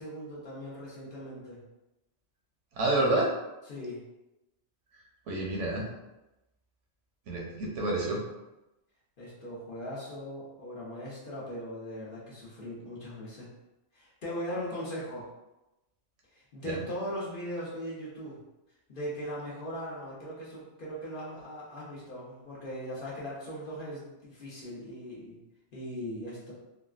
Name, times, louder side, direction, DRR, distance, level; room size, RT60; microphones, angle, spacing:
voice 1, 0.0-1.6 3.7-4.0 9.2-13.5 13.9-15.3 16.3-18.4 18.9-25.4 25.7-26.5, equal, 50° left, -7 dB, 1.0 m, -39 dB
voice 2, 2.8-3.3 5.3-5.8 7.3-8.2 16.6-16.8, right 2 dB, 80° right, -2 dB, 1.1 m, -28 dB
3.6 x 2.1 x 2.4 m, 0.96 s
omnidirectional pair, 1.2 m